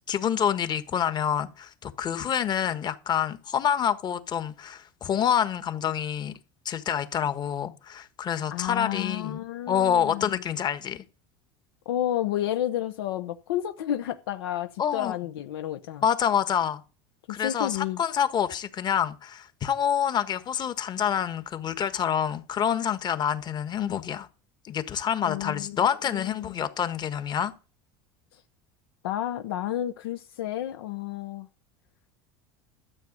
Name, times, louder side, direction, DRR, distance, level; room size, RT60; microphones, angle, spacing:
voice 1, 0.1-6.3 6.6-11.0 14.8-15.1 16.0-16.8 17.3-24.3 24.6-27.5, left 8 dB, 35° left, 1.4 m, -27 dB
voice 2, 8.5-10.4 11.9-16.0 17.3-18.0 25.2-26.6 29.0-31.5, left 12 dB, 85° left, 0.9 m, -31 dB
13.0 x 7.9 x 5.3 m
supercardioid pair, 110°, 12 cm